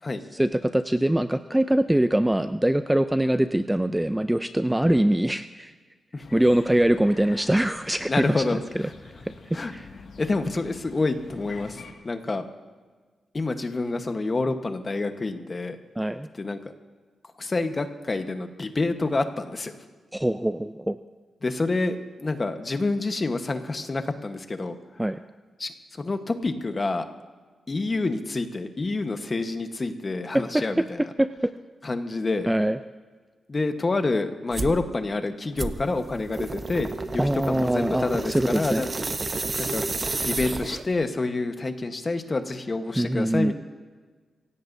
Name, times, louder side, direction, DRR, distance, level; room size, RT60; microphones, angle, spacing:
voice 1, 0.3-5.7 6.3-8.6 9.7-9.9 16.0-16.3 20.1-21.0 25.0-25.2 30.3-30.8 31.2-31.5 32.5-32.8 37.2-38.8 43.0-43.5, right 1 dB, 5° right, 10 dB, 0.4 m, -23 dB
sound 1, 6.2-11.9, left 4 dB, 70° left, 1.9 m, -46 dB
voice 2, 8.1-8.9 9.5-9.7 10.2-12.4 13.3-15.8 16.3-16.7 17.4-19.8 21.4-24.8 25.6-27.1 27.7-31.1 31.8-32.5 33.5-38.9 39.6-39.8 40.2-43.5, left 3 dB, 30° left, 7 dB, 1.1 m, -28 dB
sound 2, 34.5-34.8 35.6-41.0, right 3 dB, 30° right, 0.7 m, -31 dB
25.5 x 16.5 x 2.7 m, 1.4 s
wide cardioid pair, 125°, 0 cm